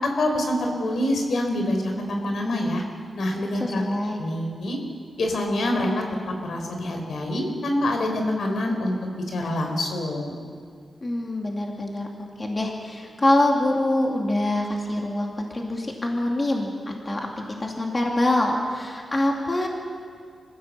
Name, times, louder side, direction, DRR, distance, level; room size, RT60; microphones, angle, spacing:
voice 1, 0.0-2.8 3.2-3.8 4.2-4.8 5.2-6.0 6.4-9.0 9.3-10.3, left 1 dB, 75° left, 3 dB, 3.9 m, -26 dB
voice 2, 3.6-4.2 11.0-19.7, left 1 dB, 25° left, 0 dB, 2.4 m, -25 dB
25.0 x 16.0 x 7.4 m, 2.1 s
wide cardioid pair, 120°, 0 cm